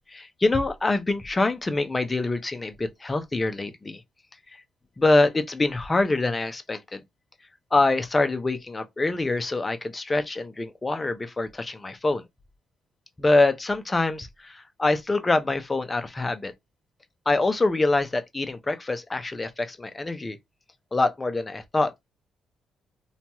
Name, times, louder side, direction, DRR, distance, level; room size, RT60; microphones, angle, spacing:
voice 1, 0.1-4.0 5.0-7.0 7.7-12.2 13.2-16.5 17.3-20.4 20.9-21.9, left 2 dB, 20° left, 0.5 m, -25 dB
2.8 x 2.3 x 2.9 m
cardioid pair, 90°, 0 cm